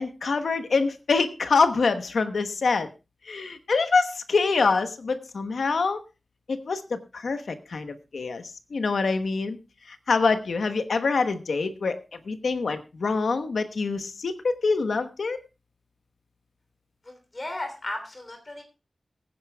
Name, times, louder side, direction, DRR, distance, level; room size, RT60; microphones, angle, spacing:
voice 1, 0.0-2.9 3.2-6.0 6.5-9.6 9.9-12.0 12.2-15.4, left 4 dB, 85° left, 8 dB, 1.1 m, -25 dB
voice 2, 17.0-18.6, left 1 dB, 35° left, 6 dB, 3.2 m, -35 dB
22.5 x 9.5 x 2.3 m, 0.28 s
wide cardioid pair, 95°, 0 cm